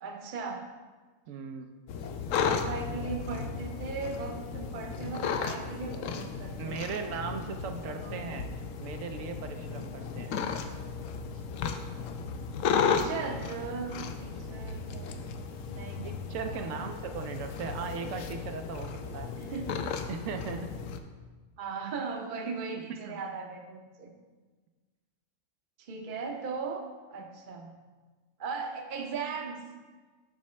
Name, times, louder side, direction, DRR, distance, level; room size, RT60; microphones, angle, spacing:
voice 1, 0.0-0.7 2.4-6.8 7.9-8.3 12.8-13.9 14.2-15.2 15.7-16.1 16.5-16.9 19.3-19.7 21.6-24.1 25.8-26.8 27.1-27.7 28.4-29.6, right 5 dB, 45° right, 3 dB, 0.8 m, -38 dB
voice 2, 1.3-1.7 6.6-8.5 8.8-10.4 16.0-19.3 20.1-20.7 23.0-23.2, right 5 dB, 80° right, 6 dB, 0.9 m, -38 dB
sound 1, 1.9-21.0, left 6 dB, 80° left, 0.9 m, -34 dB
7.5 x 6.2 x 3.2 m, 1.4 s
omnidirectional pair, 1.3 m